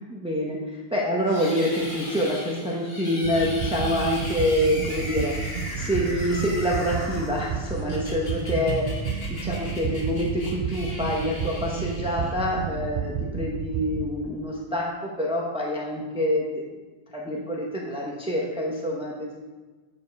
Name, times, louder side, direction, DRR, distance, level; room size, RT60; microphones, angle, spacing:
voice 1, 0.1-9.1 9.4-16.6 17.1-19.3, equal, 5° right, -3 dB, 1.0 m, -26 dB
sound 1, 1.3-12.6, left 1 dB, 70° left, 1.8 m, -38 dB
sound 2, 3.2-14.0, right 6 dB, 85° right, 0.9 m, -31 dB
8.6 x 4.5 x 5.4 m, 1.3 s
omnidirectional pair, 1.0 m